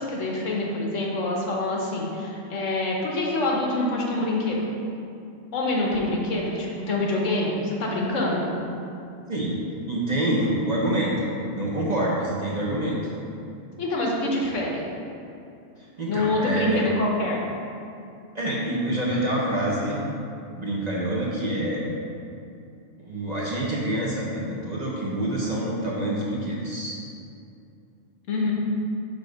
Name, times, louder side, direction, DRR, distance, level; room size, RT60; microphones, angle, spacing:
voice 1, 0.0-4.6 5.5-8.5 13.8-14.8 16.1-17.4 28.3-28.5, left 2 dB, 75° left, -2 dB, 1.3 m, -26 dB
voice 2, 9.3-9.6 9.9-13.0 16.0-16.8 18.3-20.0 20.6-21.9 23.0-27.0, right 1 dB, 40° right, -5 dB, 0.8 m, -26 dB
6.3 x 3.5 x 5.1 m, 2.6 s
omnidirectional pair, 1.3 m